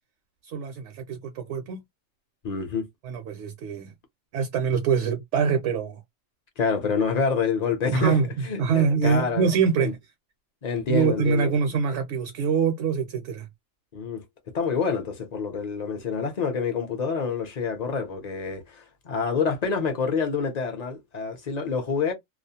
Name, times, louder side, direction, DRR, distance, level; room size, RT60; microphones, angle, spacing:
voice 1, 0.5-1.8 3.0-3.9 4.3-6.0 7.9-10.0 10.9-13.5, right 6 dB, 70° right, 0.8 m, -24 dB
voice 2, 2.4-2.9 6.6-9.5 9.8-9.9 10.6-11.5 13.9-14.2 14.5-22.1, left 5 dB, 45° left, 0.6 m, -27 dB
2.4 x 2.0 x 2.7 m
omnidirectional pair, 1.3 m